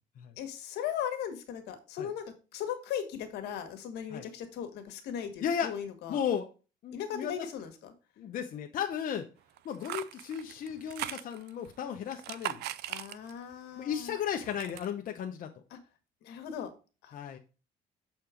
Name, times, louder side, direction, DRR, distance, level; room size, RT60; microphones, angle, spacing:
voice 1, 0.4-2.2 2.5-6.2 6.9-7.9 12.9-14.1 15.7-15.8 16.2-16.7 17.0-17.1, left 9 dB, 80° left, 7 dB, 1.6 m, -38 dB
voice 2, 5.4-5.7 6.1-6.5 6.8-7.5 8.2-9.3 9.6-12.6 13.8-15.5 17.1-17.4, left 8 dB, 55° left, 3 dB, 0.9 m, -34 dB
sound 1, 9.6-11.7 12.1-13.5 13.9-14.9, right 14 dB, 75° right, 0.5 m, -40 dB
7.0 x 4.4 x 5.0 m, 0.33 s
cardioid pair, 110°, 17 cm